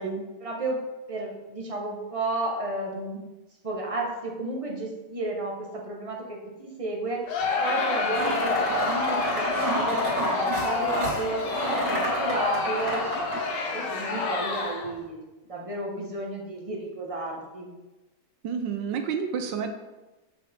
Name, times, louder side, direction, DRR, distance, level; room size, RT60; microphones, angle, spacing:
voice 1, 0.4-3.3 3.6-7.3 7.6-11.4 11.7-13.0 13.7-15.2 15.5-17.7, right 2 dB, 20° right, -1 dB, 1.1 m, -32 dB
Crowd, 7.3-15.0, left 4 dB, 80° left, 1.7 m, -28 dB
sound 1, 8.1-13.4, right 1 dB, 60° right, 3.0 m, -30 dB
voice 2, 18.4-19.7, right 6 dB, 90° right, 6 dB, 1.4 m, -29 dB
7.6 x 6.0 x 3.6 m, 1.1 s
omnidirectional pair, 1.9 m